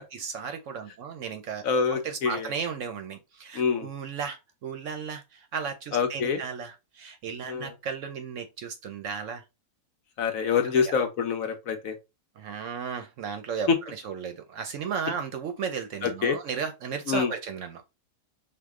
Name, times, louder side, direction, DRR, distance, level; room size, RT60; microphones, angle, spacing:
voice 1, 0.1-1.6 1.9-9.4 10.9-11.0 12.4-17.8, right 6 dB, 65° right, 0.8 m, -35 dB
voice 2, 1.6-2.5 3.5-3.9 5.9-6.4 7.5-7.7 10.2-12.0 13.7-13.8 16.0-16.4 17.1-17.3, left 6 dB, 65° left, 1.2 m, -26 dB
4.8 x 2.4 x 3.6 m
omnidirectional pair, 1.6 m